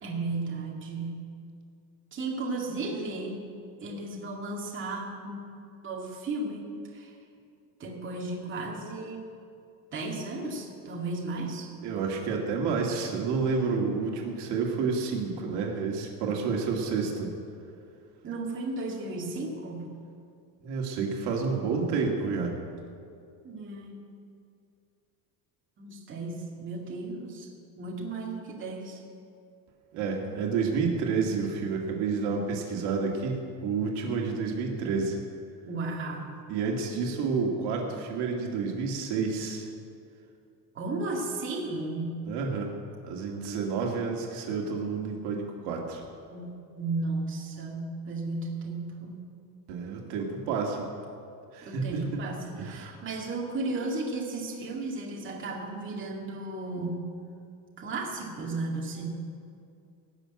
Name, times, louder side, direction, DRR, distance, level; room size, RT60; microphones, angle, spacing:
voice 1, 0.0-1.3 2.1-3.4 3.8-5.5 5.8-7.1 7.8-9.3 9.9-11.7 18.2-19.9 23.4-24.0 25.8-27.5 27.8-29.0 35.6-36.4 40.7-42.3 46.3-49.2 51.6-57.1 57.8-59.1, right 2 dB, 25° right, -2 dB, 2.2 m, -34 dB
voice 2, 11.8-17.3 20.6-22.6 29.9-35.2 36.5-39.7 42.3-42.7 43.0-46.0 49.7-50.9 51.5-52.2 52.6-53.0, right 5 dB, 65° right, 0 dB, 2.4 m, -29 dB
18.0 x 6.4 x 8.8 m, 2.5 s
cardioid pair, 140°, 44 cm